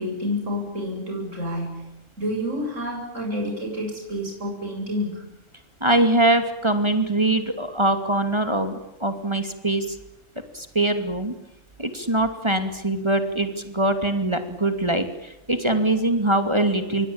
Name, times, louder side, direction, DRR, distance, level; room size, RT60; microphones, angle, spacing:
voice 1, 0.0-1.7 2.2-5.2, left 1 dB, 55° right, 0 dB, 8.5 m, -29 dB
voice 2, 5.8-10.0 10.5-11.3 11.8-17.1, right 1 dB, 20° right, 8 dB, 2.6 m, -23 dB
27.5 x 23.5 x 8.9 m, 0.90 s
omnidirectional pair, 1.5 m